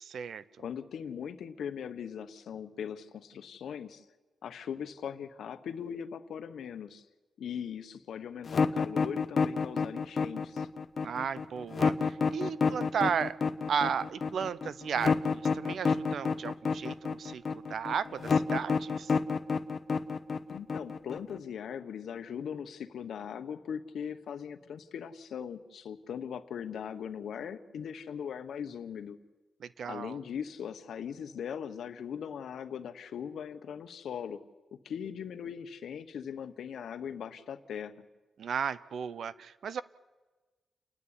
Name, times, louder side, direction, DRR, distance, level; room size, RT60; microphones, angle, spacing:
voice 1, 0.1-0.4 11.0-13.4 13.7-19.1 29.6-30.2 38.4-39.8, right 7 dB, 60° right, 17 dB, 0.7 m, -34 dB
voice 2, 0.6-4.0 4.4-7.0 7.4-10.7 20.5-29.2 29.9-34.4 34.7-37.9, left 8 dB, 75° left, 11 dB, 1.1 m, -40 dB
sound 1, 8.5-21.4, left 5 dB, 35° left, 0.8 m, -29 dB
29.5 x 10.0 x 9.8 m, 1.2 s
wide cardioid pair, 175°, 0 cm